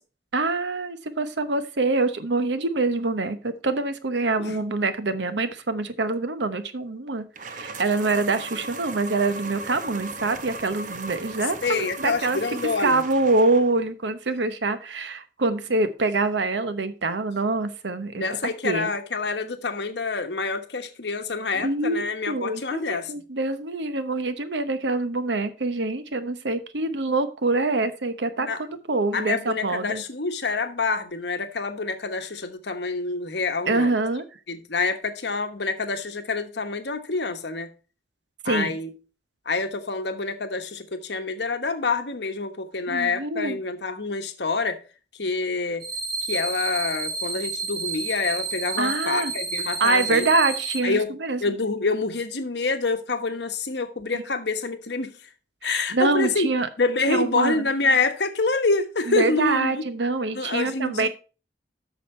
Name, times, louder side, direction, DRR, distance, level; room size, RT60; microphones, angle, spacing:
voice 1, 0.3-12.4 12.8-18.2 18.6-18.9 21.5-30.0 33.7-34.2 38.4-38.7 42.9-43.6 48.8-49.3 49.8-51.5 55.6-56.7 57.1-57.7 59.1-61.1, right 3 dB, 85° right, 0.9 m, -25 dB
sound 1, 7.4-13.9, right 3 dB, 45° right, 0.8 m, -37 dB
voice 2, 11.6-13.0 18.1-23.1 28.4-28.6 29.1-34.0 34.5-37.7 38.4-38.9 39.4-44.8 45.2-45.8 46.2-50.3 50.8-51.1 51.4-55.1 55.6-56.5 56.8-59.7 60.3-61.1, left 3 dB, 70° left, 1.2 m, -27 dB
sound 2, 45.8-50.8, right 4 dB, 60° right, 1.9 m, -30 dB
8.4 x 6.4 x 4.4 m
head